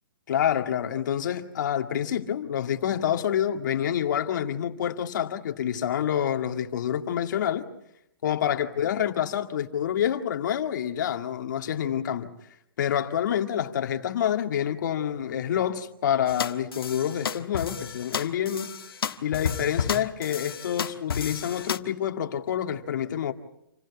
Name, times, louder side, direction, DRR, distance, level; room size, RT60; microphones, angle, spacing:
voice 1, 0.3-7.7 8.2-12.3 12.8-18.7 19.2-23.3, left 9 dB, 55° left, 2.0 m, -27 dB
sound 1, 16.3-21.8, left 7 dB, 90° left, 1.5 m, -32 dB
28.0 x 15.5 x 8.4 m
hypercardioid pair, 160°, 12 cm